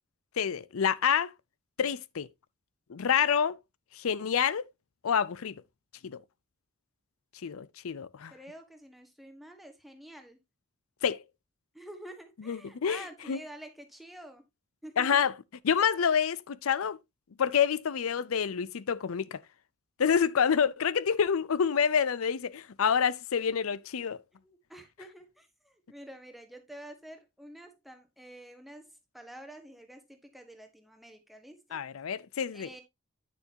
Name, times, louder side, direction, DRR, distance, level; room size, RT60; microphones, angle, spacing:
voice 1, 0.4-1.3 1.8-2.3 2.9-3.6 3.9-4.6 5.0-5.6 6.0-6.2 7.4-8.3 11.0-11.2 12.5-13.4 15.0-15.3 15.6-17.0 17.4-19.4 20.0-24.2 31.7-32.7, left 7 dB, 90° left, 0.5 m, -27 dB
voice 2, 8.3-10.4 11.7-14.4 14.8-15.3 24.4-31.8 32.5-32.8, right 1 dB, ahead, 1.3 m, -48 dB
9.6 x 6.7 x 2.7 m
head